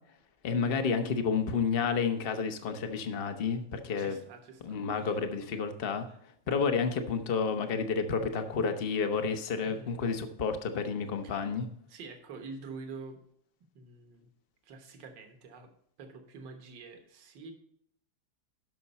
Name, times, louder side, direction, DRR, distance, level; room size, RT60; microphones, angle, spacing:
voice 1, 0.4-4.2 4.6-6.1 6.5-11.7, left 5 dB, 45° left, 7 dB, 0.8 m, -30 dB
voice 2, 4.0-5.2 6.1-6.2 6.5-6.6 9.6-10.0 11.2-11.5 11.9-13.2 13.8-14.3 14.6-15.7 16.0-17.5, right 4 dB, 70° right, 4 dB, 1.9 m, -47 dB
12.5 x 5.9 x 4.2 m, 0.69 s
omnidirectional pair, 2.0 m